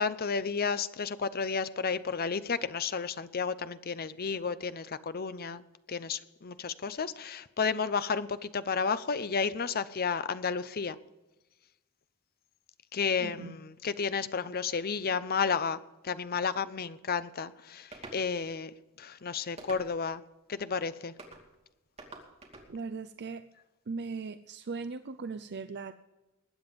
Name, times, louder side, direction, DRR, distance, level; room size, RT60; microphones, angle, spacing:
voice 1, 0.0-5.6 5.9-11.0 12.9-18.7 19.0-20.2 20.5-21.1, left 5 dB, 45° left, 14 dB, 0.7 m, -32 dB
voice 2, 13.2-13.6 22.7-23.5 23.9-25.9, right 4 dB, 50° right, 11 dB, 0.5 m, -39 dB
sound 1, 17.9-18.2 19.6-20.1 21.2-21.4 22.0-22.7, right 2 dB, 30° right, 2.5 m, -47 dB
20.5 x 9.2 x 5.2 m, 1.1 s
head